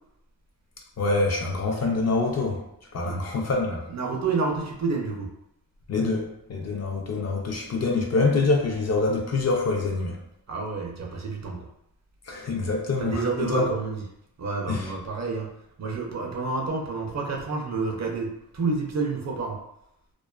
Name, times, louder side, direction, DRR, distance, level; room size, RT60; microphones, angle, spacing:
voice 1, 1.0-2.6 2.9-3.8 5.9-10.2 12.3-13.7 14.7-14.9, left 3 dB, 45° left, 1 dB, 0.4 m, -25 dB
voice 2, 3.9-5.3 10.5-11.7 13.0-14.0 14.4-15.5 15.8-18.3 18.5-19.6, right 4 dB, 45° right, 0 dB, 0.5 m, -29 dB
2.4 x 2.3 x 2.3 m, 0.79 s
wide cardioid pair, 120°, 38 cm